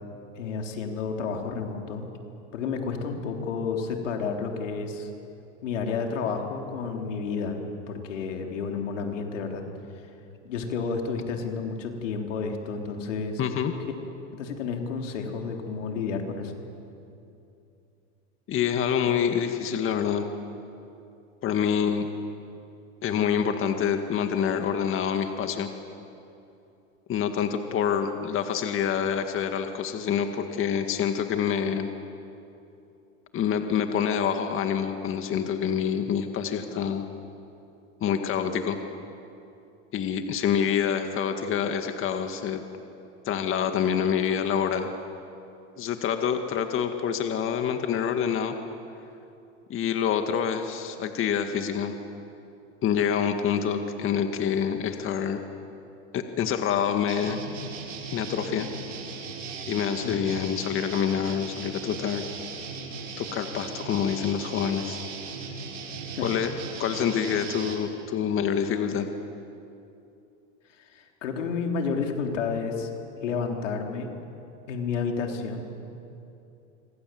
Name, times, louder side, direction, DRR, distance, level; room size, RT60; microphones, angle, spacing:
voice 1, 0.4-2.1 2.5-5.1 5.6-9.6 10.4-13.4 14.3-16.5 60.0-60.2 66.1-66.3 70.8-72.9 73.2-74.1 74.7-75.7, left 5 dB, 85° left, 2 dB, 3.8 m, -31 dB
voice 2, 13.4-13.7 18.5-20.3 21.4-22.1 23.0-25.7 27.1-31.9 33.3-37.1 38.0-38.8 39.9-42.6 43.3-44.9 45.8-48.6 49.7-51.9 52.8-55.4 56.1-57.4 58.1-58.7 59.6-62.2 63.2-65.0 66.2-66.5 66.8-69.1, left 8 dB, 35° left, 6 dB, 1.9 m, -26 dB
sound 1, 57.1-67.8, right 4 dB, 85° right, 6.2 m, -38 dB
27.0 x 26.0 x 7.8 m, 2.7 s
hypercardioid pair, 110°, 36 cm